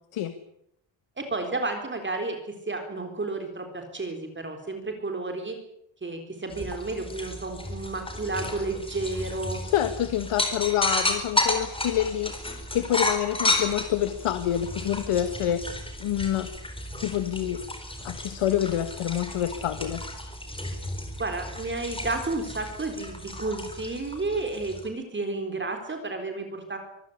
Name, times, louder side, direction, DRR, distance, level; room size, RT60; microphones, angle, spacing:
voice 1, 1.2-5.6 6.0-9.6 21.2-26.8, right 3 dB, 20° right, 5 dB, 3.9 m, -32 dB
sound 1, 6.5-24.9, left 1 dB, 10° left, 4.3 m, -32 dB
voice 2, 9.7-16.5 17.0-17.6 18.0-20.0, left 11 dB, 90° left, 9 dB, 1.7 m, -27 dB
24.5 x 15.0 x 9.8 m, 0.75 s
wide cardioid pair, 165°, 49 cm